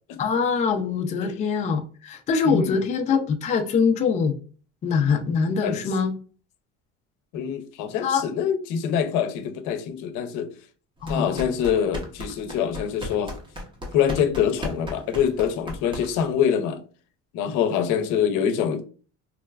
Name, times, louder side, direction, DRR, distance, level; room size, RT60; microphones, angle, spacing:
voice 1, 0.2-4.4 4.8-6.1 8.0-8.2 11.0-11.3, left 5 dB, 25° left, 5 dB, 0.3 m, -23 dB
voice 2, 2.4-2.8 5.6-5.8 7.3-10.5 11.1-13.3 13.9-16.8 17.3-18.8, left 8 dB, 80° left, 8 dB, 0.6 m, -25 dB
sound 1, 11.0-16.4, left 1 dB, 15° right, 0.6 m, -36 dB
3.9 x 2.2 x 2.3 m, 0.39 s
cardioid pair, 145°, 30 cm